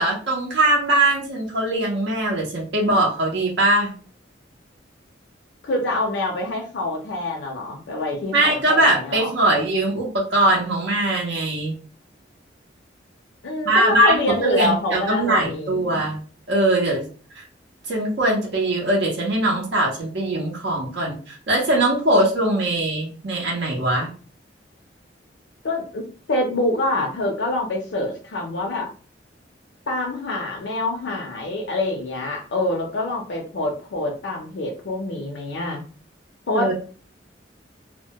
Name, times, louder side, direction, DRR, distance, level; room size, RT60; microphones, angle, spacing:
voice 1, 0.0-3.9 8.3-11.8 13.6-16.2 16.5-17.0 17.4-17.5 17.9-24.1 36.5-36.7, right 1 dB, 75° right, -2 dB, 0.6 m, -21 dB
voice 2, 5.6-9.3 13.4-16.0 25.6-26.0 26.3-28.9 29.9-35.8 36.5-36.7, left 2 dB, 75° left, 0 dB, 0.5 m, -26 dB
2.1 x 2.1 x 2.7 m, 0.40 s
head